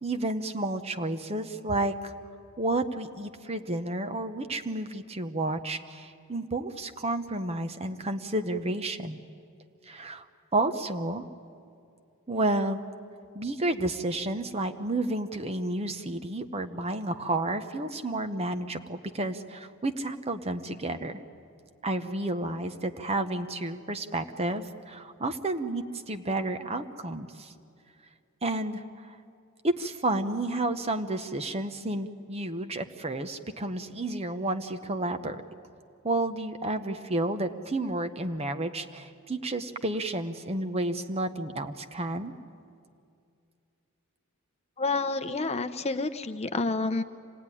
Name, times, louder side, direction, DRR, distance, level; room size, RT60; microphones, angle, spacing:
voice 1, 0.0-2.1 2.6-9.2 9.9-10.3 10.5-11.2 12.3-12.8 13.3-21.2 21.8-27.5 28.4-29.2 29.6-35.4 36.0-42.3, right 2 dB, 30° right, 8 dB, 0.9 m, -31 dB
voice 2, 44.8-47.0, left 3 dB, 30° left, 10 dB, 0.6 m, -29 dB
25.5 x 18.5 x 9.9 m, 2.4 s
head